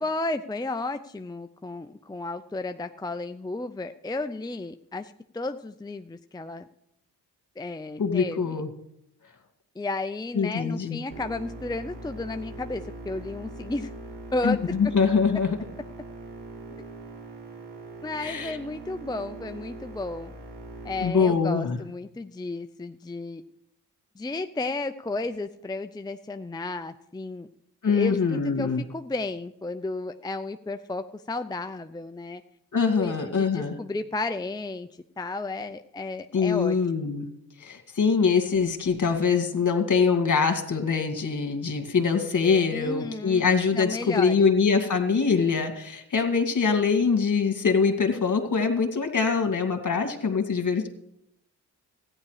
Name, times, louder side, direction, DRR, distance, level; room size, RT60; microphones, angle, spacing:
voice 1, 0.0-6.7 7.6-8.6 9.8-13.9 14.3-14.7 18.0-20.3 20.8-23.4 24.2-27.5 27.9-32.4 33.0-37.1 42.7-44.5, left 2 dB, 10° left, 8 dB, 0.6 m, -33 dB
voice 2, 8.0-8.7 10.4-11.0 14.4-15.6 18.2-18.6 21.0-21.8 27.8-28.8 32.7-33.8 36.3-37.3 37.6-50.9, left 5 dB, 50° left, 5 dB, 2.2 m, -23 dB
sound 1, 11.1-21.1, right 2 dB, 85° right, 2.2 m, -41 dB
14.0 x 9.8 x 4.9 m, 0.78 s
supercardioid pair, 45°, 39 cm